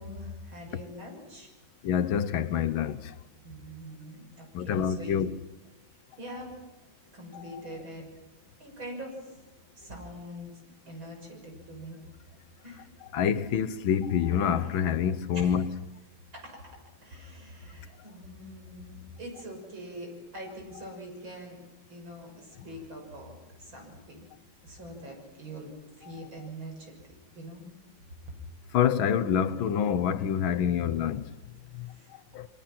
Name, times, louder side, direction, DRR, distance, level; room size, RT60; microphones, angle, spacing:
voice 1, 0.0-1.5 3.4-5.2 6.2-6.6 7.1-8.1 8.6-9.4 9.8-10.6 10.9-12.0 12.6-12.9 15.3-15.6 16.3-21.6 21.9-24.3 24.6-25.7 26.0-26.9 27.4-27.6 31.8-32.2, equal, 70° right, 7.1 m, -43 dB
voice 2, 1.8-3.0 4.6-5.4 13.1-15.7 28.7-31.2 32.4-32.5, left 8 dB, 75° left, 1.8 m, -26 dB
27.0 x 24.0 x 6.0 m
omnidirectional pair, 2.2 m